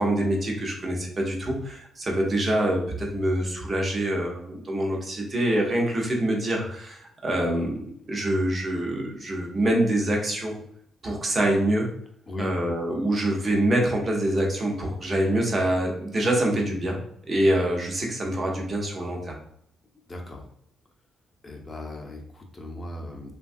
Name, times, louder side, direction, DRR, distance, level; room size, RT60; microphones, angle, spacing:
voice 1, 0.0-10.6 11.0-11.9 12.4-17.0 17.3-19.3, right 1 dB, 35° right, 0 dB, 0.8 m, -25 dB
voice 2, 20.1-20.5 21.4-23.3, left 1 dB, 25° left, 1 dB, 0.7 m, -37 dB
3.1 x 2.3 x 2.6 m, 0.68 s
cardioid pair, 90°, 0 cm